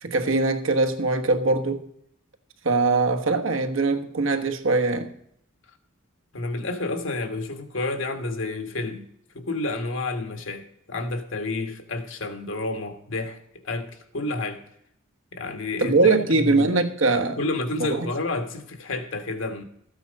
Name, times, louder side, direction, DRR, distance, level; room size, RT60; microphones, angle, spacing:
voice 1, 0.0-1.9 2.6-5.1 15.8-17.4 17.8-18.1, right 3 dB, 70° right, 1.3 m, -22 dB
voice 2, 6.3-9.1 9.3-13.4 13.6-14.6 15.3-16.7 17.4-19.6, left 2 dB, 65° left, 1.5 m, -30 dB
13.5 x 9.0 x 5.3 m
head